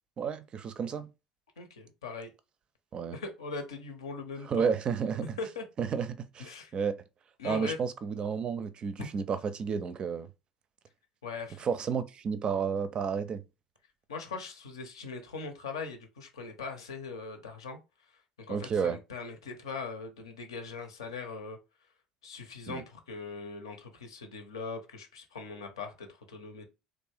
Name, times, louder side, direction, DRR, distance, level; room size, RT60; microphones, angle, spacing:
voice 1, 0.2-1.1 2.9-3.2 4.5-5.3 5.8-6.9 7.4-10.3 11.6-13.4 18.5-19.0 22.7-22.8, right 6 dB, 35° right, 0.4 m, -31 dB
voice 2, 1.6-2.3 3.1-4.7 5.4-5.6 6.4-6.7 7.4-7.8 9.0-9.1 11.2-11.7 14.1-21.6 22.2-26.6, left 4 dB, 70° left, 0.7 m, -40 dB
3.2 x 2.5 x 3.3 m
figure-of-eight pair, 65°, 3 cm